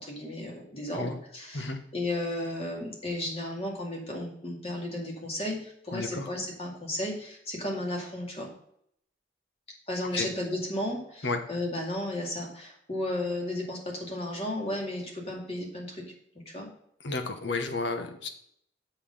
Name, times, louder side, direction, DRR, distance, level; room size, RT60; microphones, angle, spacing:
voice 1, 0.0-8.5 9.9-16.0 16.5-16.7, left 1 dB, 30° left, -1 dB, 2.3 m, -34 dB
voice 2, 5.9-6.3 10.1-10.3 11.2-11.4 17.0-18.3, left 3 dB, 70° left, 6 dB, 1.1 m, -32 dB
6.8 x 5.7 x 5.6 m, 0.69 s
head